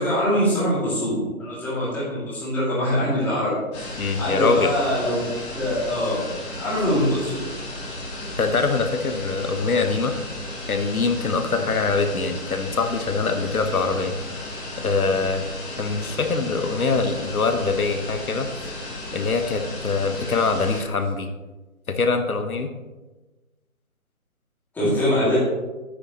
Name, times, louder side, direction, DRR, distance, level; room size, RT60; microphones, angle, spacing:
voice 1, 0.0-5.2 5.5-6.2 6.5-7.4 24.7-25.4, equal, 5° left, -10 dB, 2.6 m, -23 dB
sound 1, 3.7-20.8, left 1 dB, 20° left, 2.2 m, -34 dB
voice 2, 4.0-4.7 8.4-10.1 10.7-14.1 14.8-15.4 15.8-18.5 19.1-21.3 21.9-22.7, left 4 dB, 85° left, 7 dB, 1.1 m, -23 dB
9.9 x 9.7 x 3.1 m, 1.2 s
hypercardioid pair, 160°, 42 cm